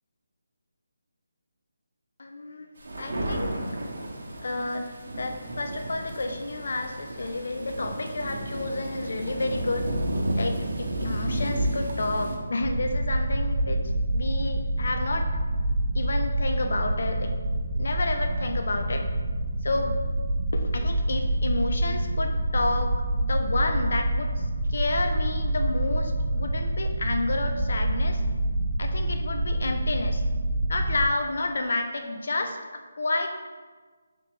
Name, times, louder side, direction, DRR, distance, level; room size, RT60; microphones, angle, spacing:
voice 1, 2.2-2.7 3.0-3.5 4.4-4.9 5.2-9.9 10.3-15.3 15.9-17.4 17.8-19.1 19.6-20.0 20.5-22.9 23.2-28.2 28.8-30.2 30.7-33.4, left 2 dB, 65° left, 5 dB, 0.5 m, -30 dB
sound 1, 2.8-12.4, right 1 dB, 65° right, 0.7 m, -31 dB
sound 2, 12.6-31.1, right 1 dB, 45° right, 0.3 m, -27 dB
3.6 x 3.3 x 3.3 m, 1.5 s
figure-of-eight pair, 165°, 0 cm